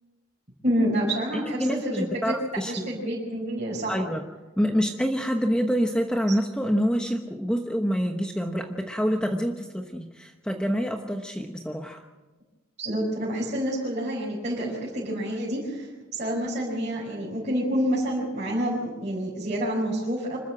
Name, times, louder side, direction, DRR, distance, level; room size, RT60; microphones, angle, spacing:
voice 1, 0.6-2.3 2.6-4.0 12.8-20.4, equal, 35° right, -6 dB, 5.4 m, -28 dB
voice 2, 1.3-2.9 3.9-4.3 4.6-12.0, equal, 5° left, 3 dB, 1.1 m, -27 dB
25.5 x 14.0 x 7.7 m, 1.2 s
head